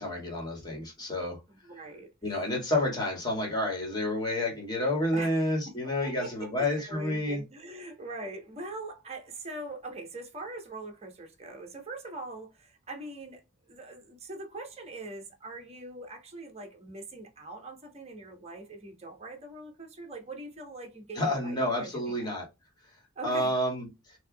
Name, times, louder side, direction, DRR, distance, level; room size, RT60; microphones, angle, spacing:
voice 1, 0.0-1.4 2.2-7.4 21.2-22.4 23.2-23.9, left 1 dB, 20° left, 1.9 m, -29 dB
voice 2, 1.5-2.1 5.1-5.4 5.6-5.8 6.0-22.3 23.2-23.5, right 2 dB, 30° right, 1.2 m, -42 dB
4.5 x 2.8 x 2.3 m
head